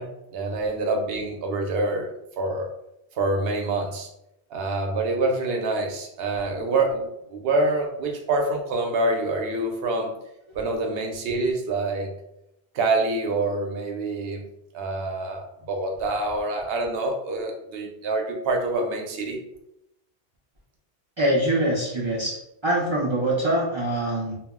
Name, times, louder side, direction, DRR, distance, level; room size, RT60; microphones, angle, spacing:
voice 1, 0.0-2.7 3.2-4.1 4.5-10.1 10.5-12.1 12.7-14.4 14.7-19.4, right 2 dB, 65° right, 2 dB, 0.8 m, -26 dB
voice 2, 21.2-24.3, right 1 dB, 40° right, -5 dB, 0.4 m, -24 dB
2.2 x 2.0 x 3.6 m, 0.84 s
omnidirectional pair, 1.1 m